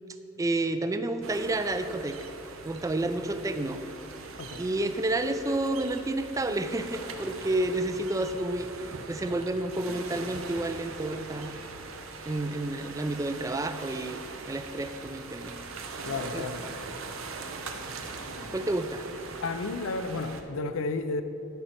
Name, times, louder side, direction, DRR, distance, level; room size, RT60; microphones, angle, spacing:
voice 1, 0.4-2.2 2.6-3.8 4.6-11.5 12.3-15.5 16.3-16.5 18.5-19.1, right 2 dB, 15° right, 0.3 m, -30 dB
sound 1, 1.2-20.4, right 4 dB, 90° right, 0.7 m, -41 dB
voice 2, 16.0-16.7 19.4-21.2, left 3 dB, 90° left, 0.5 m, -32 dB
10.5 x 4.3 x 5.8 m
head